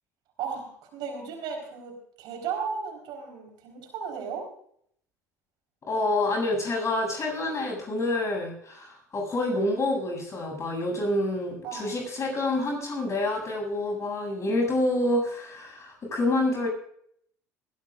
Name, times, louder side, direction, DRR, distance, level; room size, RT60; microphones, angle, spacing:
voice 1, 0.4-4.4 11.6-11.9, right 6 dB, 55° right, 2 dB, 4.3 m, -35 dB
voice 2, 5.9-16.7, left 2 dB, 35° left, 1 dB, 8.0 m, -27 dB
21.0 x 16.0 x 2.5 m, 0.66 s
figure-of-eight pair, 65°, 9 cm